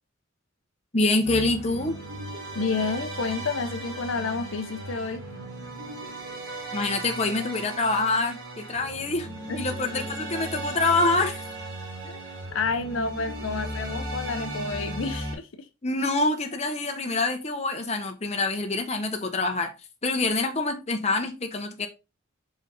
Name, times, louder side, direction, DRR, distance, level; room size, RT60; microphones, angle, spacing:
voice 1, 0.9-2.0 6.7-9.3 9.5-11.4 15.8-19.7 20.0-21.9, left 2 dB, 30° left, 0.9 m, -26 dB
sound 1, 1.2-15.3, right 1 dB, 65° right, 3.0 m, -36 dB
voice 2, 2.5-5.2 9.5-9.6 12.0-12.2 12.5-15.5, left 4 dB, 65° left, 0.6 m, -30 dB
5.1 x 4.9 x 4.0 m
head